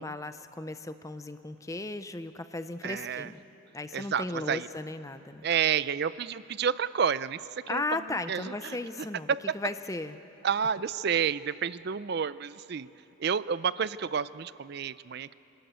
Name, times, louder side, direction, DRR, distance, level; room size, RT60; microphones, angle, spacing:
voice 1, 0.0-3.4 3.7-5.5 7.7-10.2, left 2 dB, 15° left, 11 dB, 0.5 m, -36 dB
voice 2, 2.8-3.3 3.9-4.7 5.4-7.4 7.7-8.8 9.3-9.4 10.4-12.9 13.2-15.3, right 7 dB, 50° right, 17 dB, 0.4 m, -30 dB
26.0 x 13.0 x 9.3 m, 2.9 s
head